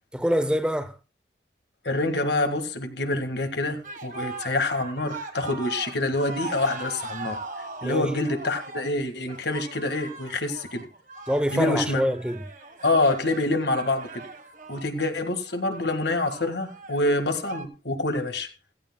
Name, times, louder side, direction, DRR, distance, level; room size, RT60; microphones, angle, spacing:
voice 1, 0.1-1.0 7.8-8.1 11.3-12.4, equal, 5° right, 0.6 m, -25 dB
voice 2, 1.8-7.4 7.8-10.8 11.5-12.0 12.8-14.2 14.7-18.5, left 2 dB, 75° left, 1.7 m, -26 dB
sound 1, 3.8-17.6, right 3 dB, 45° right, 1.5 m, -40 dB
15.5 x 15.5 x 2.3 m
head